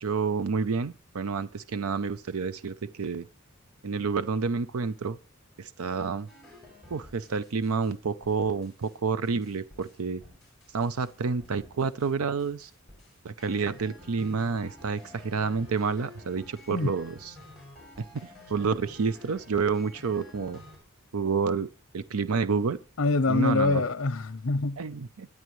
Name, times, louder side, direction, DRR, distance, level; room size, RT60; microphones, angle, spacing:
voice 1, 0.0-3.3 3.8-5.2 5.6-6.3 6.9-10.2 10.7-12.7 13.2-17.3 18.1-20.6 21.1-21.7 21.9-22.8 23.3-23.8 24.8-25.3, right 5 dB, 90° right, 0.6 m, -29 dB
sound 1, 6.3-7.9 8.2-8.9 9.2-11.1 11.4-12.1 12.4-20.8, left 1 dB, ahead, 7.0 m, -51 dB
voice 2, 23.0-24.8, left 3 dB, 65° left, 0.7 m, -25 dB
23.5 x 9.5 x 3.1 m
head